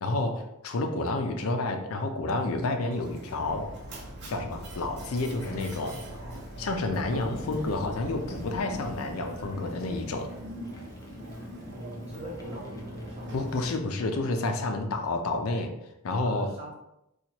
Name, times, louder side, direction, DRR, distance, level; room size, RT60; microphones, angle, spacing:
voice 1, 0.0-3.7 4.3-5.9 6.6-10.3 13.3-15.7 16.0-16.5, left 2 dB, 80° left, 5 dB, 0.5 m, -30 dB
Mechanisms, 2.9-13.7, right 1 dB, 55° right, 0.7 m, -43 dB
sound 1, 3.4-9.4, equal, 50° left, 0.8 m, -46 dB
sound 2, 7.1-13.8, equal, 15° left, 0.5 m, -43 dB
voice 2, 11.7-13.7 16.2-16.8, equal, 30° right, -5 dB, 1.1 m, -41 dB
4.3 x 2.3 x 2.9 m, 0.84 s
head